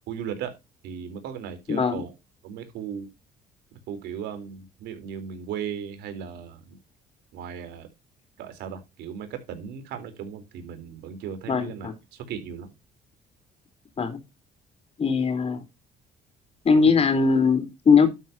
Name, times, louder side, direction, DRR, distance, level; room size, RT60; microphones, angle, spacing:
voice 1, 0.1-0.5 0.8-2.1 2.4-3.1 3.9-6.8 7.3-7.9 8.4-12.7, right 8 dB, 85° right, 9 dB, 3.8 m, -36 dB
voice 2, 1.7-2.0 11.5-11.9 14.0-14.2 15.0-15.6 16.6-18.1, left 5 dB, 35° left, 9 dB, 3.9 m, -20 dB
12.5 x 9.1 x 2.8 m, 0.23 s
cardioid pair, 110°, 17 cm